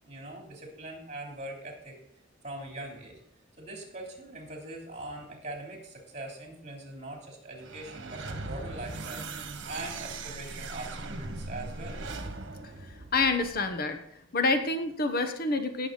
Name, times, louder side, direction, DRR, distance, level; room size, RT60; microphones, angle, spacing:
voice 1, 0.0-2.0 2.4-3.2 3.6-9.3 9.6-12.0, right 2 dB, 35° right, 0 dB, 3.3 m, -42 dB
sound 1, 7.5-13.8, right 3 dB, 60° right, 1.4 m, -39 dB
voice 2, 12.8-14.0 14.3-15.9, left 3 dB, 50° left, 7 dB, 1.1 m, -27 dB
17.0 x 6.9 x 4.0 m, 0.68 s
head